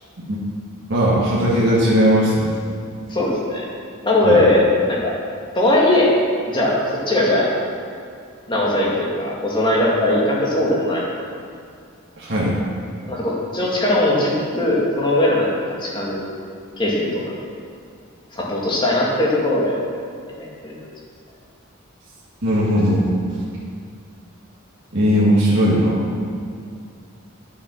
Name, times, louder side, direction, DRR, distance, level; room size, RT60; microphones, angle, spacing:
voice 1, 0.9-2.5 4.2-4.4 12.2-12.6 22.4-23.0 24.9-26.1, equal, 55° right, -7 dB, 2.0 m, -17 dB
voice 2, 3.1-3.6 4.0-5.2 5.5-6.1 6.5-6.8 7.1-7.5 8.5-11.0 13.1-15.5 15.8-16.2 16.8-17.4 18.3-19.8 20.3-20.7, left 1 dB, 20° left, -4 dB, 2.1 m, -19 dB
9.9 x 7.3 x 6.2 m, 2.3 s
head